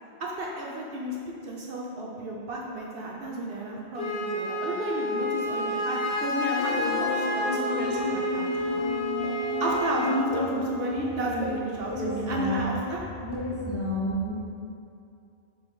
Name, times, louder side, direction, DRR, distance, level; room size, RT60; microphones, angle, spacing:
voice 1, 0.2-1.2 1.4-8.5 9.6-13.0, right 1 dB, 65° right, -3 dB, 0.7 m, -32 dB
Wind instrument woodwind instrument, 4.0-10.2, left 1 dB, 60° left, 0.8 m, -30 dB
sound 1, 6.6-12.9, left 2 dB, 90° left, 0.9 m, -33 dB
voice 2, 11.8-12.7 13.2-14.3, equal, 15° left, -8 dB, 0.8 m, -30 dB
4.3 x 3.2 x 3.6 m, 2.5 s
omnidirectional pair, 1.1 m